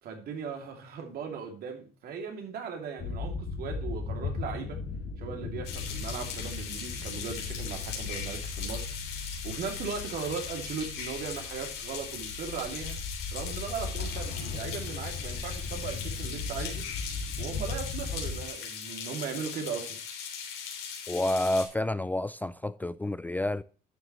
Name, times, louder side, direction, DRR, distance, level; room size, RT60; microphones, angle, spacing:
voice 1, 0.0-4.8 5.2-8.9 9.4-13.0 13.3-16.9 17.4-20.0, right 6 dB, 65° right, 2.7 m, -38 dB
sound 1, 3.0-18.5, left 4 dB, 55° left, 1.8 m, -37 dB
sound 2, 5.6-21.7, left 7 dB, 80° left, 3.3 m, -39 dB
voice 2, 21.1-23.6, left 1 dB, 10° left, 0.3 m, -29 dB
11.0 x 7.2 x 3.1 m
cardioid pair, 110°, 17 cm